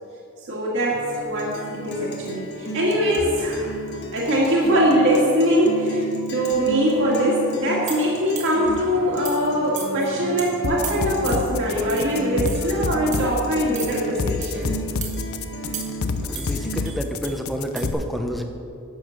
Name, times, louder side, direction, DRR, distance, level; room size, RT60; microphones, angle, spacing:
voice 1, 0.5-3.7 4.1-14.8, equal, 60° right, -5 dB, 1.9 m, -22 dB
Guitar, 0.9-16.9, right 1 dB, 50° left, 1.3 m, -33 dB
sound 1, 7.9-8.7 9.2-9.5 9.8-10.1 10.4-10.5 10.8-11.5 11.9-12.1 12.5-12.7 13.1-13.3 13.7-14.0 14.4-14.7 15.0-15.2 15.7-16.1 16.3-17.4 17.8-17.9, right 7 dB, 35° right, 1.4 m, -35 dB
sound 2, 10.6-17.9, left 4 dB, 75° left, 0.6 m, -27 dB
voice 2, 16.2-18.4, equal, ahead, 4 dB, 0.8 m, -29 dB
11.0 x 7.1 x 6.3 m, 2.6 s
head